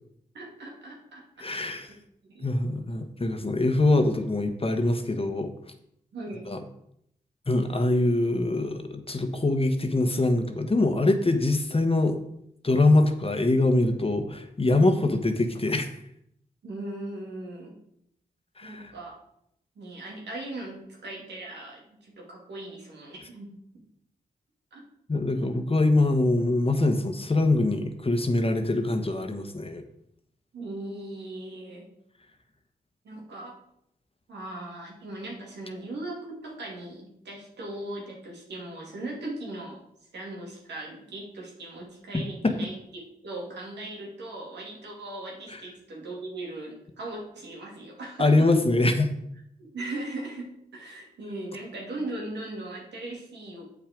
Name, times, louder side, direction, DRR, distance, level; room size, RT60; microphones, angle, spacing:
voice 1, 0.3-2.0 2.2-2.5 6.1-6.5 16.6-17.7 18.6-19.2 19.8-23.6 24.7-24.8 30.5-31.9 33.0-33.6 34.3-39.8 40.1-48.5 49.7-53.6, right 2 dB, 90° right, -2 dB, 2.4 m, -39 dB
voice 2, 1.4-1.9 2.4-5.5 6.5-6.6 7.5-12.2 12.6-15.9 18.6-18.9 25.1-29.8 42.4-42.6 45.5-45.6 48.2-49.1, left 2 dB, 35° left, 7 dB, 1.2 m, -23 dB
7.4 x 5.9 x 5.2 m, 0.74 s
cardioid pair, 40°, 17 cm